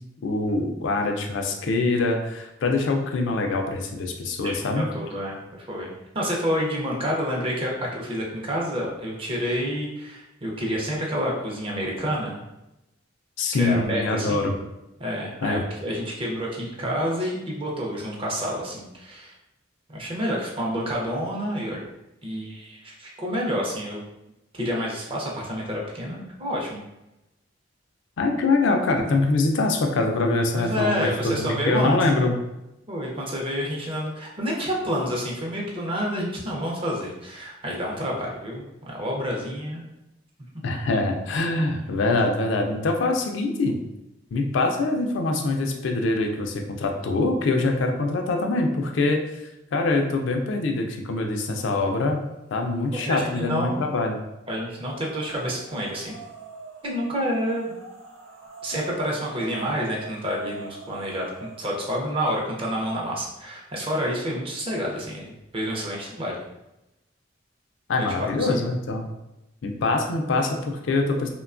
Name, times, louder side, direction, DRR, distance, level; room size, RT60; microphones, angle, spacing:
voice 1, 0.2-4.9 13.4-14.6 15.4-15.6 28.2-31.1 31.4-32.4 40.6-43.8 44.3-49.2 49.7-52.2 52.5-54.2 67.9-69.0 69.6-71.3, left 3 dB, 70° left, 3 dB, 0.4 m, -24 dB
voice 2, 4.4-5.9 6.1-12.4 13.5-14.5 15.0-19.3 19.9-21.8 22.2-24.0 24.5-26.8 30.5-32.0 32.9-39.8 52.9-53.8 54.5-56.2 56.8-57.7 58.6-66.4 68.0-68.6, equal, 30° right, -2 dB, 0.5 m, -29 dB
sound 1, 51.4-52.0 52.3-54.1 54.9-62.1, right 4 dB, 85° right, 0.5 m, -43 dB
2.9 x 2.2 x 2.4 m, 0.92 s
head